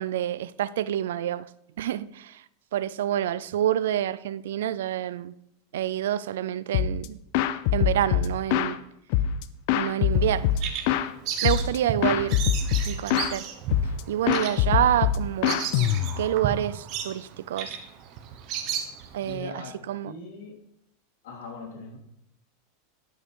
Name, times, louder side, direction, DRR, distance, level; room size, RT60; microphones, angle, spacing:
voice 1, 0.0-1.5 1.8-2.4 2.7-5.3 5.7-7.2 7.7-8.8 9.7-10.5 11.4-13.5 14.1-15.6 16.2-17.8 19.1-20.1, right 11 dB, 90° right, 0.4 m, -28 dB
sound 1, 6.7-7.1 7.3-8.8 9.1-11.1 11.4-11.8 12.0-13.3 13.7-14.0 14.3-16.3, left 10 dB, 50° left, 0.5 m, -24 dB
Bird vocalization bird call bird song, 10.1-19.4, right 8 dB, 40° right, 1.1 m, -34 dB
voice 2, 19.2-19.8 20.0-20.6 21.2-22.0, left 4 dB, 70° left, 2.7 m, -40 dB
11.0 x 5.4 x 4.7 m
supercardioid pair, 165°, 0 cm